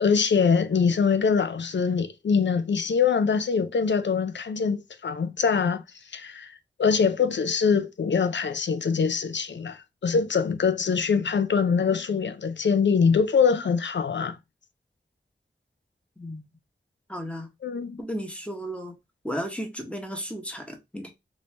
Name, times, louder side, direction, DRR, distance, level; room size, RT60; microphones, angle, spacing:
voice 1, 0.0-5.8 6.1-14.4 17.6-18.0, left 6 dB, 75° left, 0.5 m, -23 dB
voice 2, 17.1-17.5 18.0-18.9 19.2-21.1, equal, 5° left, 1.0 m, -34 dB
3.1 x 2.7 x 3.2 m
wide cardioid pair, 50°, 19 cm